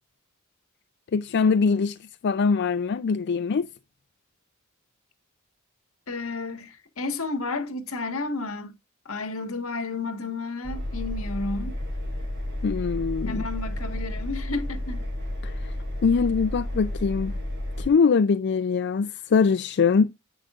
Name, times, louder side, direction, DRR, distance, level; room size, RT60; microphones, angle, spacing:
voice 1, 1.1-3.7 12.6-13.4 15.4-15.7 16.0-17.4 17.8-20.1, left 5 dB, 55° left, 0.4 m, -23 dB
voice 2, 6.1-8.7 9.0-11.8 13.2-15.1, left 3 dB, 75° left, 1.5 m, -32 dB
Engine, 10.6-17.9, left 1 dB, 55° right, 6.3 m, -31 dB
10.0 x 9.1 x 2.4 m
head